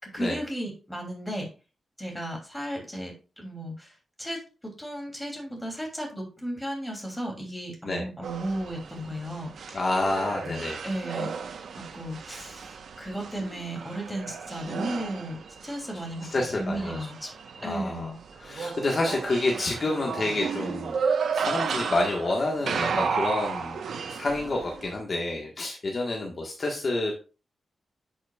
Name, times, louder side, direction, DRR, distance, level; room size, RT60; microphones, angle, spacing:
voice 1, 0.0-1.5 2.0-3.9 4.2-9.5 10.4-11.3 11.9-15.4 15.6-16.3 16.6-17.3 17.6-18.2, right 1 dB, 5° left, 1 dB, 3.0 m, -34 dB
sound 1, 8.2-25.0, right 5 dB, 75° right, 1.0 m, -33 dB
voice 2, 9.7-10.8 16.2-17.0 17.6-18.1 18.4-21.0 21.3-23.8 24.1-27.1, left 2 dB, 40° left, 0 dB, 1.5 m, -28 dB
11.0 x 6.3 x 2.4 m, 0.33 s
wide cardioid pair, 140°, 0 cm